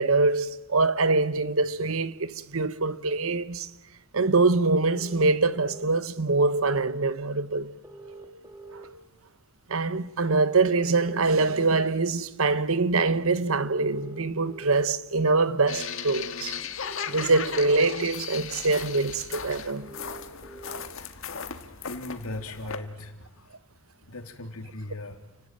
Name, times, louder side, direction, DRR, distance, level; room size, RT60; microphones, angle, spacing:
voice 1, 0.0-3.7 4.1-7.7 9.7-16.6 17.1-19.9, right 3 dB, 70° right, 1.2 m, -24 dB
sound 1, 4.9-5.9 7.8-8.9 10.8-11.8 13.8-14.8 16.8-17.8 19.8-20.8, right 3 dB, 15° right, 2.8 m, -45 dB
sound 2, 15.7-22.8, left 6 dB, 65° left, 1.8 m, -37 dB
voice 2, 21.8-23.5 24.1-25.2, left 2 dB, 90° left, 3.1 m, -38 dB
30.0 x 18.5 x 8.9 m
head